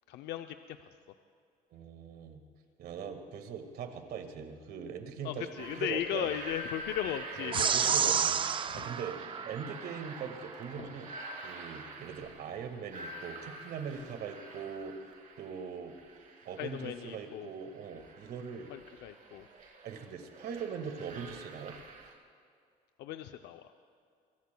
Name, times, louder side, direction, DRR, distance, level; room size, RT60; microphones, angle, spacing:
voice 1, 0.1-0.9 5.2-8.0 8.7-8.8 16.6-17.5 18.7-19.5 23.0-23.7, left 11 dB, 80° left, 7 dB, 0.6 m, -37 dB
voice 2, 1.7-2.4 2.8-6.3 7.4-8.4 8.7-11.1 11.4-14.9 15.4-15.9 16.5-18.7 19.8-21.8, right 6 dB, 65° right, 6 dB, 1.8 m, -41 dB
sound 1, 5.6-22.1, right 2 dB, 50° right, 2.9 m, -47 dB
sound 2, 7.5-10.2, right 7 dB, 30° right, 0.4 m, -30 dB
23.5 x 22.5 x 2.3 m, 2.3 s
cardioid pair, 110°, 17 cm